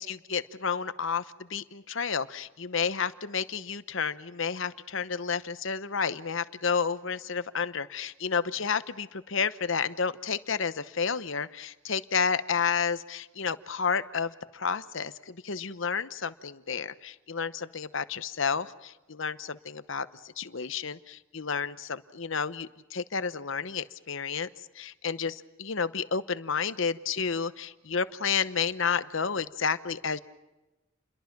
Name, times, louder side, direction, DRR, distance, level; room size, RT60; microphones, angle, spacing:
voice 1, 0.0-20.1 20.4-24.5 24.7-30.2, left 6 dB, 60° left, 13 dB, 0.9 m, -31 dB
29.5 x 22.0 x 6.0 m, 1.1 s
head